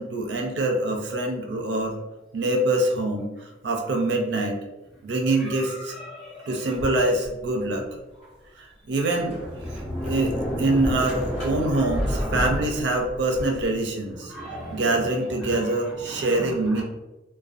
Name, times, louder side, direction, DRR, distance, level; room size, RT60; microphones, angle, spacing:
voice 1, 0.0-2.0 2.3-3.3 3.6-4.6 5.0-5.9 6.5-7.9 8.6-9.4 10.0-10.3 10.6-14.3 14.7-16.8, right 2 dB, 70° right, 2 dB, 0.5 m, -24 dB
voice 2, 5.4-6.6 14.2-15.1 15.4-15.7 16.0-16.8, equal, ahead, -12 dB, 0.6 m, -38 dB
Sliding door, 6.7-7.7 8.2-8.3 8.9-13.7, equal, 35° left, 1.1 m, -30 dB
2.4 x 2.1 x 2.4 m, 1.0 s
head